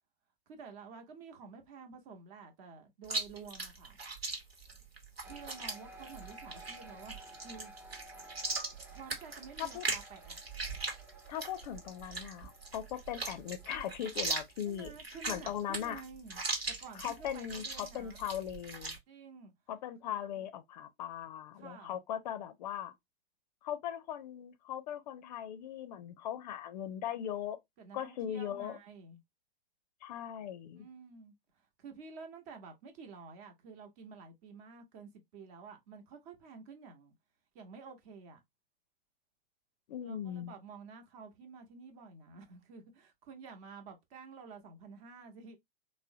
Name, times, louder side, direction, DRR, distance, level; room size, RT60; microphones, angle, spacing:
voice 1, 0.5-4.0 5.2-7.7 8.9-10.4 14.6-16.4 16.7-18.2 19.1-19.5 20.0-20.4 21.6-22.0 27.8-29.2 30.7-31.3 31.8-37.1 37.5-38.4 40.0-45.6, right 5 dB, 40° right, 1.0 m, -51 dB
Chewing mastication, 3.0-19.0, right 3 dB, 90° right, 1.0 m, -40 dB
sound 1, 5.2-14.8, right 2 dB, 5° right, 0.4 m, -54 dB
voice 2, 11.3-16.0 17.0-19.0 19.7-22.9 23.6-27.6 27.9-28.8 30.0-30.9 39.9-40.5, left 10 dB, 45° left, 0.5 m, -39 dB
3.5 x 2.1 x 2.6 m
figure-of-eight pair, 105°, 30 cm